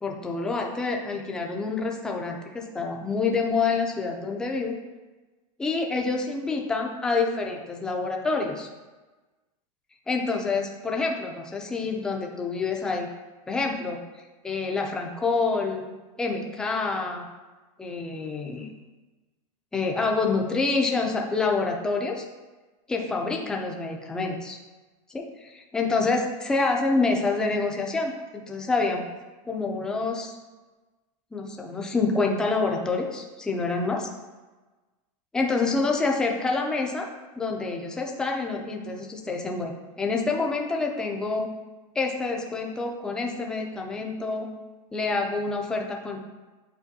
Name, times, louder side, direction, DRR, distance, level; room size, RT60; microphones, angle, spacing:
voice 1, 0.0-4.8 5.6-8.7 10.1-13.1 13.5-14.0 14.4-15.8 16.2-17.3 17.8-18.7 19.7-22.3 22.9-24.6 25.1-29.0 29.5-30.4 31.3-34.1 35.3-37.1 37.3-41.5 42.0-44.5 44.9-46.2, left 3 dB, 5° left, 1 dB, 0.4 m, -27 dB
8.2 x 4.3 x 2.7 m, 1.2 s
supercardioid pair, 170°, 19 cm